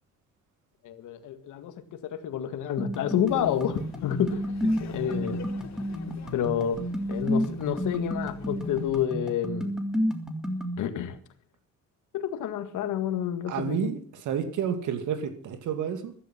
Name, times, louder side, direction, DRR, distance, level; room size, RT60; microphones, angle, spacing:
voice 1, 0.8-5.4 6.1-6.8 7.1-9.7 10.8-11.2 12.1-13.9, left 9 dB, 80° left, 1.9 m, -29 dB
sound 1, 2.8-10.8, equal, ahead, 3.1 m, -31 dB
Laughter, 3.3-9.1, left 6 dB, 65° left, 2.8 m, -47 dB
voice 2, 13.5-16.1, right 8 dB, 80° right, 2.3 m, -30 dB
14.5 x 12.5 x 5.8 m
cardioid pair, 90°, 30 cm